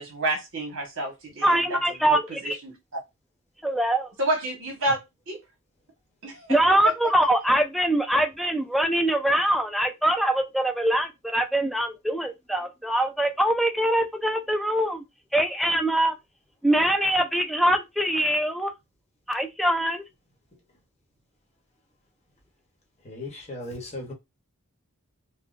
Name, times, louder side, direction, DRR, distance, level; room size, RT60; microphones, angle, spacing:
voice 1, 0.0-3.0 4.2-5.0 5.3-5.4 6.2-6.9, right 1 dB, 60° right, 1.3 m, -30 dB
voice 2, 1.4-2.2 3.6-4.1 6.5-15.0 15.3-16.1 16.6-18.7 19.3-20.0, right 1 dB, ahead, 0.3 m, -23 dB
voice 3, 23.0-24.1, left 1 dB, 30° left, 1.0 m, -36 dB
3.8 x 2.1 x 2.5 m
head